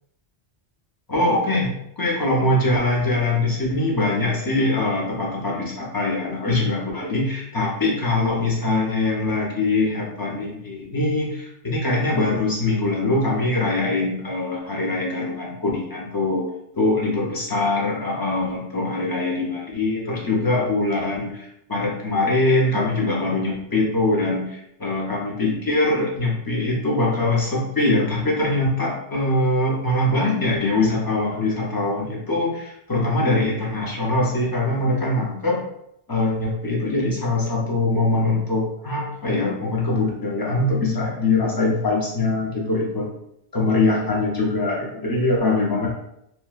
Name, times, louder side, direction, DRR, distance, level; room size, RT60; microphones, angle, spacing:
voice 1, 1.1-16.4 16.7-35.6 36.1-43.1 43.5-45.9, left 2 dB, 25° left, -3 dB, 0.5 m, -22 dB
3.1 x 2.2 x 2.3 m, 0.78 s
omnidirectional pair, 1.1 m